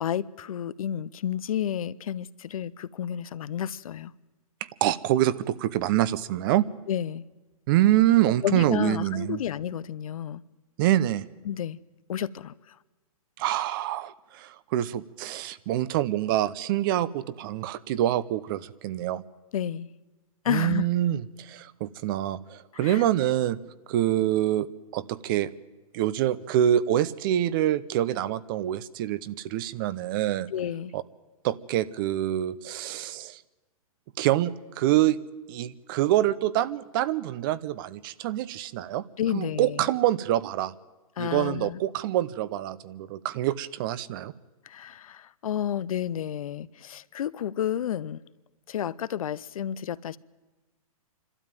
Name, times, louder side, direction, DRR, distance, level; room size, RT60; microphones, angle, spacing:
voice 1, 0.0-4.1 6.9-7.2 8.4-10.4 11.4-11.8 12.1-12.8 19.5-19.9 20.4-20.9 22.7-23.0 30.5-30.9 39.2-39.9 41.2-41.8 44.6-48.2 48.7-50.2, left 10 dB, 70° left, 18 dB, 0.7 m, -31 dB
voice 2, 4.8-6.7 7.7-9.4 10.8-11.3 13.4-19.2 20.5-23.6 23.9-24.7 24.9-25.5 25.9-30.5 30.9-31.0 31.4-33.4 34.2-35.2 35.5-39.0 39.3-40.7 41.2-44.3, right 13 dB, 35° right, 18 dB, 0.7 m, -26 dB
26.0 x 12.5 x 9.0 m, 1.2 s
hypercardioid pair, 145°, 19 cm